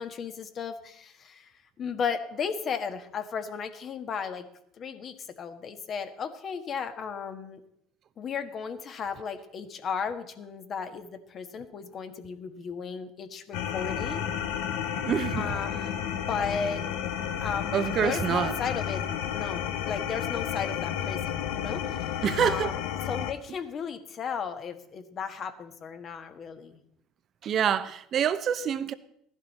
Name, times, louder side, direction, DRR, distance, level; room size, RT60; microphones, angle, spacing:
voice 1, 0.0-1.5 1.8-4.5 4.8-7.6 8.2-14.2 15.4-16.9 17.4-21.8 22.4-26.8, left 6 dB, 45° left, 1.4 m, -35 dB
sound 1, 13.5-23.3, left 9 dB, 75° left, 0.9 m, -32 dB
voice 2, 15.0-15.5 17.7-18.6 22.2-22.7 27.4-28.9, right 8 dB, 50° right, 0.8 m, -26 dB
15.5 x 11.5 x 4.2 m
hypercardioid pair, 75°, 0 cm